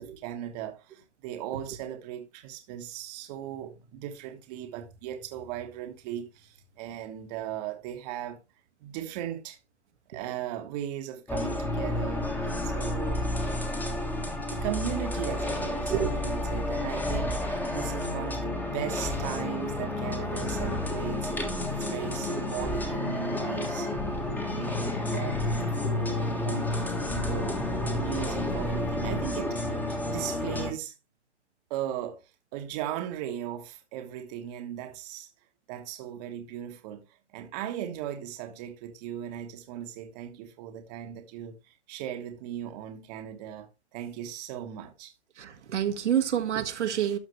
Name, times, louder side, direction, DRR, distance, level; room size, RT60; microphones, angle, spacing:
voice 1, 0.0-8.4 8.8-9.6 10.1-13.2 14.5-24.0 24.4-30.9 31.7-35.3 35.7-37.1 37.3-45.1, right 11 dB, 35° right, 1.4 m, -38 dB
sound 1, 11.3-30.7, left 1 dB, 5° left, 1.4 m, -30 dB
voice 2, 45.4-47.2, right 9 dB, 80° right, 1.8 m, -28 dB
12.5 x 5.8 x 3.1 m
hypercardioid pair, 145°, 35 cm